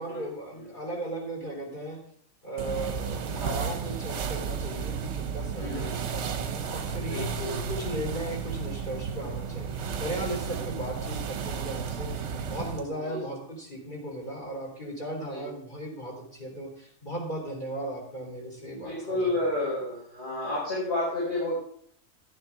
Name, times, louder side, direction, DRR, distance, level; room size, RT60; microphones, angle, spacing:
voice 1, 0.0-2.0 2.4-19.3, right 1 dB, 35° left, -2 dB, 4.1 m, -37 dB
sound 1, 2.6-12.9, right 6 dB, 60° right, 1.0 m, -33 dB
voice 2, 5.6-5.9 7.1-7.6 10.5-10.6 13.0-13.2 15.3-15.5 18.6-21.5, left 2 dB, 50° left, -8 dB, 5.4 m, -31 dB
13.5 x 10.0 x 3.6 m, 0.62 s
omnidirectional pair, 1.4 m